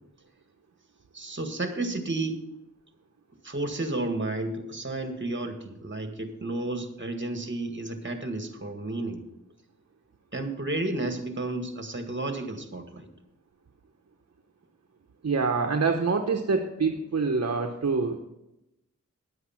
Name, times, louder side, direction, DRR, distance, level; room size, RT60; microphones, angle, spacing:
voice 1, 1.1-2.4 3.4-9.2 10.3-13.1, right 2 dB, 35° right, 6 dB, 1.8 m, -32 dB
voice 2, 15.2-18.2, right 4 dB, 55° right, 4 dB, 0.9 m, -26 dB
11.0 x 8.0 x 5.8 m, 0.91 s
cardioid pair, 40°, 31 cm